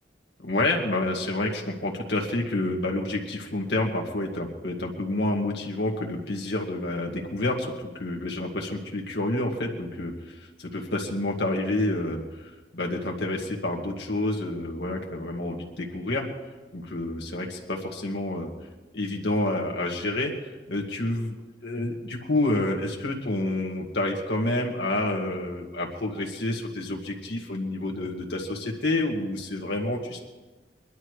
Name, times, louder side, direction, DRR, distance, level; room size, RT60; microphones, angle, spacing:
voice 1, 0.4-16.3 16.7-18.5 18.9-20.3 20.7-21.4 21.6-30.2, left 2 dB, 70° left, 0 dB, 2.1 m, -29 dB
21.5 x 12.0 x 4.9 m, 1.2 s
head